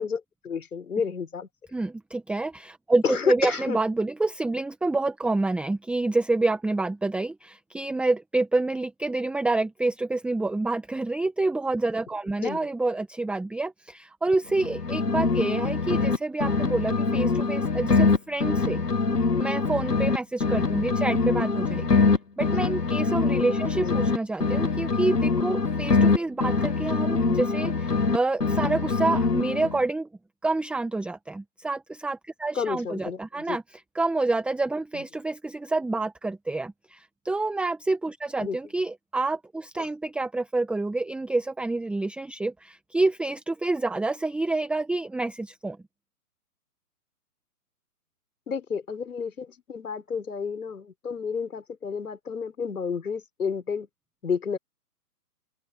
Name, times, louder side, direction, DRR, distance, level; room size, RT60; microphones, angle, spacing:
voice 1, 0.0-1.5 3.0-3.8 12.4-12.7 23.7-23.9 32.5-33.6 38.4-38.6 39.8-39.9 48.5-53.9 54.2-54.6, left 6 dB, 70° left, 6.0 m, -30 dB
voice 2, 1.7-18.8 19.4-22.0 22.4-30.1 30.4-45.8, right 2 dB, ahead, 1.5 m, -28 dB
sound 1, 14.5-16.2 16.4-20.2 20.4-24.2 24.4-28.2 28.4-29.8, left 4 dB, 85° left, 1.9 m, -24 dB
open air
figure-of-eight pair, 135°, 46 cm